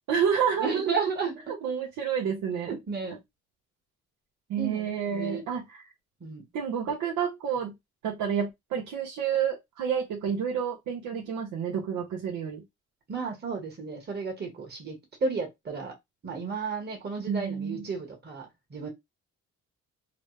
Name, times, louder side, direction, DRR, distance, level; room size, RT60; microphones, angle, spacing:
voice 1, 0.1-0.9 1.6-2.7 4.5-5.8 6.5-7.7 8.0-12.6 17.3-17.8, right 7 dB, 85° right, 0.9 m, -29 dB
voice 2, 0.6-1.5 2.7-3.2 4.6-5.4 6.2-6.4 13.1-15.9 16.2-18.9, right 5 dB, 35° right, 1.4 m, -33 dB
3.0 x 2.2 x 3.2 m
cardioid pair, 90°, 30 cm